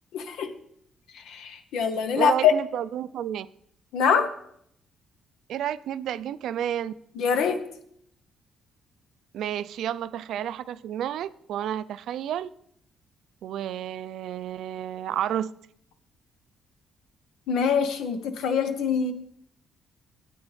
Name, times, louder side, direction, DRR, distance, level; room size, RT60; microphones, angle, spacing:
voice 1, 0.1-0.5 1.3-2.5 3.9-4.3 7.2-7.6 17.5-19.1, left 7 dB, 85° left, 0.9 m, -24 dB
voice 2, 2.1-3.5 5.5-6.9 9.3-12.5 13.4-15.5, right 10 dB, 75° right, 0.3 m, -31 dB
12.5 x 8.5 x 3.2 m
cardioid pair, 90°, 0 cm